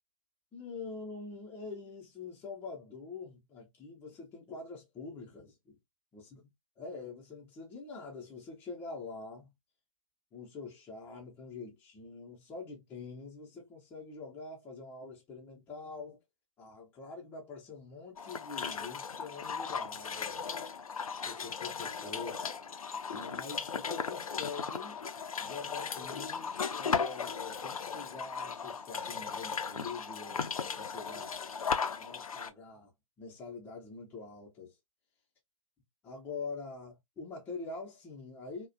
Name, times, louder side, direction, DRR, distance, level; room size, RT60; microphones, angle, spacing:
voice 1, 0.5-5.8 6.1-6.4 6.8-9.5 10.3-16.2 16.6-20.4 21.1-22.5 23.1-25.0 25.4-31.4 32.0-34.7 36.0-38.7, left 4 dB, 10° left, 0.6 m, -45 dB
sound 1, 18.2-32.5, left 6 dB, 80° left, 0.4 m, -37 dB
2.3 x 2.1 x 2.5 m
figure-of-eight pair, 130°, 18 cm